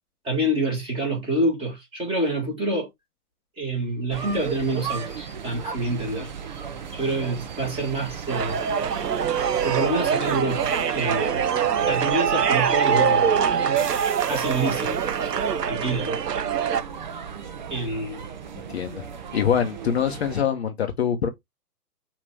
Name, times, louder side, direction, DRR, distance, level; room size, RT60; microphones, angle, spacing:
voice 1, 0.2-2.9 3.6-6.3 6.9-8.6 9.6-11.4 11.9-13.7 14.2-15.0 15.6-16.2 17.7-18.2, right 2 dB, 10° right, 2.0 m, -27 dB
sound 1, 4.1-20.4, right 7 dB, 30° right, 0.5 m, -36 dB
sound 2, 8.3-16.8, right 7 dB, 85° right, 0.6 m, -23 dB
voice 2, 18.7-19.1 19.3-21.3, left 8 dB, 45° left, 0.8 m, -24 dB
4.9 x 2.9 x 3.3 m
figure-of-eight pair, 125°, 47 cm